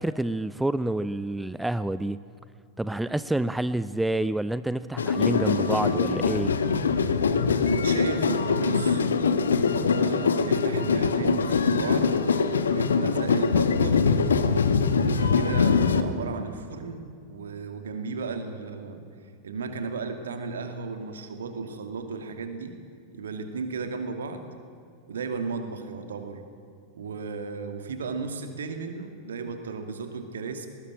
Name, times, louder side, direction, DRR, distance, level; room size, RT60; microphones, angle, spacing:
voice 1, 0.0-2.2 2.8-6.5, right 1 dB, 5° right, 15 dB, 0.5 m, -28 dB
sound 1, 5.0-16.0, left 5 dB, 70° left, 1.2 m, -23 dB
voice 2, 7.6-9.0 9.6-12.1 12.7-14.1 15.0-19.0 19.4-22.7 23.1-24.5 25.1-26.4 26.9-30.7, right 4 dB, 65° right, 7 dB, 2.4 m, -35 dB
19.5 x 19.0 x 8.9 m, 2.4 s
figure-of-eight pair, 90°, 0 cm